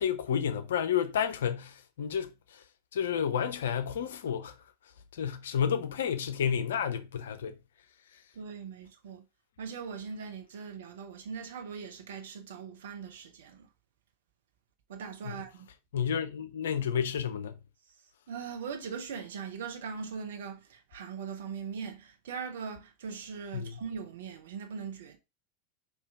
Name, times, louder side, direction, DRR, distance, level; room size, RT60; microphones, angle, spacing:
voice 1, 0.0-2.6 2.9-4.5 5.1-7.6 15.2-15.4 15.9-17.6 23.5-23.8, left 8 dB, 65° left, 0.5 m, -31 dB
voice 2, 8.3-9.2 9.6-13.7 14.9-15.7 18.3-25.2, right 6 dB, 65° right, 0.9 m, -40 dB
4.2 x 2.9 x 3.5 m
figure-of-eight pair, 85°, 0 cm